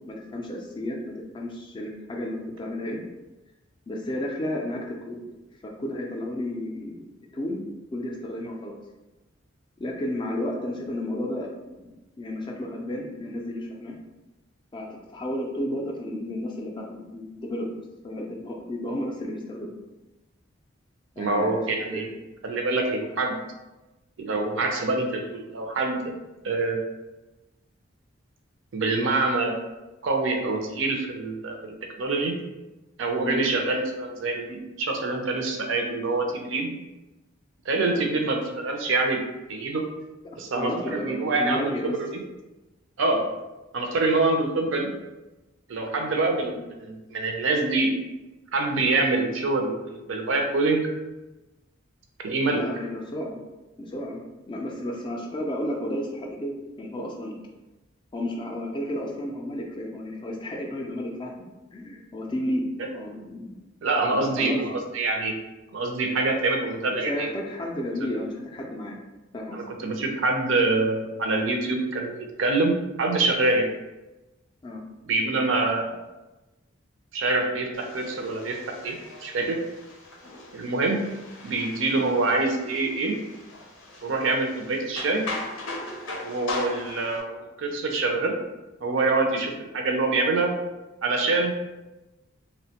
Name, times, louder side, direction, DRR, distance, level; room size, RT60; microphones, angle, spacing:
voice 1, 0.1-3.0 3.9-5.2 5.6-7.0 7.3-8.8 9.8-11.5 11.8-11.9 12.2-14.0 14.7-17.7 18.0-19.7 21.2-22.1 33.2-33.5 37.8-38.1 40.3-42.0 52.6-53.4 53.8-57.4 58.1-61.3 61.7-62.6 62.9-63.5 64.2-64.6 66.9-69.0 69.3-69.6 74.6-74.8 81.9-82.1, left 1 dB, 25° left, 0 dB, 0.3 m, -32 dB
voice 2, 21.2-22.1 22.4-23.4 24.2-26.2 26.4-26.8 28.7-29.6 30.0-32.3 33.0-36.7 37.7-39.2 39.5-39.8 40.3-42.1 43.0-43.3 43.7-44.9 45.7-47.9 48.5-50.9 52.2-52.6 63.8-65.3 65.7-67.3 69.5-72.7 73.0-73.7 75.1-76.0 77.1-78.6 78.8-79.6 80.5-81.0 81.4-83.1 84.0-85.2 86.2-88.4 88.8-90.5 91.0-91.5, right 3 dB, 70° right, 3 dB, 0.5 m, -25 dB
sound 1, 77.7-87.2, left 2 dB, 90° left, 0.5 m, -39 dB
2.7 x 2.1 x 2.8 m, 1.0 s
head